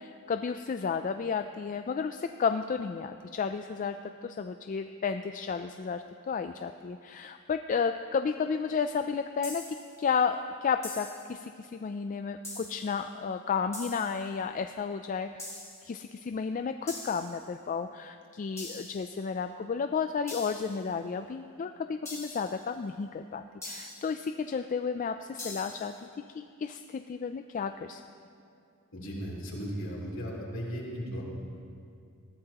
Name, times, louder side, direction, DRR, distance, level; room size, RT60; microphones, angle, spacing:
voice 1, 0.0-26.1 26.3-28.0, left 5 dB, 35° left, 8 dB, 0.3 m, -32 dB
sound 1, 9.4-9.9 10.8-11.3 12.4-12.9 13.7-14.2 15.4-15.9 16.9-17.4 18.6-19.1 20.3-20.8 22.0-22.6 23.6-24.2 25.4-26.0, left 2 dB, 15° left, 2.0 m, -43 dB
voice 2, 28.9-31.2, equal, 60° left, -4 dB, 3.2 m, -36 dB
20.5 x 14.0 x 2.9 m, 2.5 s
head